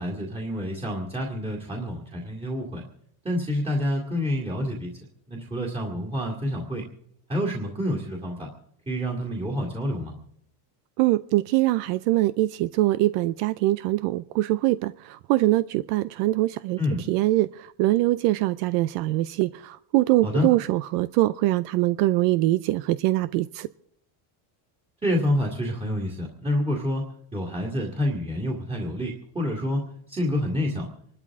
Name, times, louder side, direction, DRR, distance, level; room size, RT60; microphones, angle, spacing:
voice 1, 0.0-2.8 3.2-4.9 5.3-6.9 7.3-8.5 8.9-10.1 16.8-17.0 20.2-20.5 25.0-27.0 27.3-29.8 30.1-30.9, left 1 dB, 10° right, -3 dB, 2.3 m, -28 dB
voice 2, 11.0-16.8 17.1-17.5 17.8-23.7, right 17 dB, 80° right, 16 dB, 0.6 m, -23 dB
26.5 x 12.5 x 3.6 m, 0.71 s
cardioid pair, 140°, 49 cm